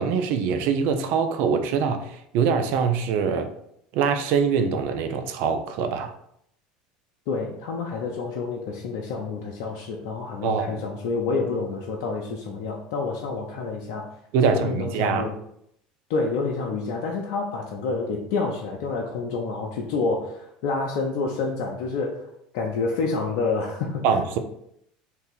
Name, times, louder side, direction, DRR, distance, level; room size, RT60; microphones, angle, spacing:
voice 1, 0.0-3.5 3.9-6.1 10.4-10.8 14.3-15.3 24.0-24.4, right 6 dB, 65° right, 7 dB, 0.5 m, -23 dB
voice 2, 7.3-14.1 14.4-15.3 16.1-22.3 22.5-24.1, left 4 dB, 70° left, -1 dB, 0.5 m, -28 dB
2.7 x 2.7 x 3.8 m, 0.73 s
hypercardioid pair, 85°, 4 cm